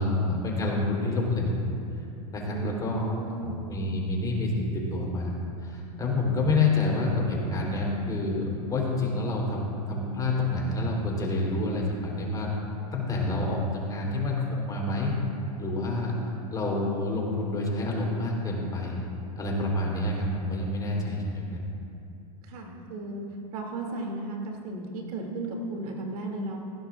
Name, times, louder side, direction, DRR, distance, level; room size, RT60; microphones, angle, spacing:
voice 1, 0.0-1.6 2.3-5.3 5.6-12.5 12.9-15.1 15.6-16.2 16.5-19.0 19.4-21.6, left 2 dB, 20° left, -2 dB, 3.5 m, -28 dB
voice 2, 2.5-3.6 22.4-23.2 23.5-26.6, right 2 dB, 70° right, 0 dB, 2.6 m, -35 dB
20.0 x 16.5 x 2.5 m, 2.6 s
supercardioid pair, 130°, 19 cm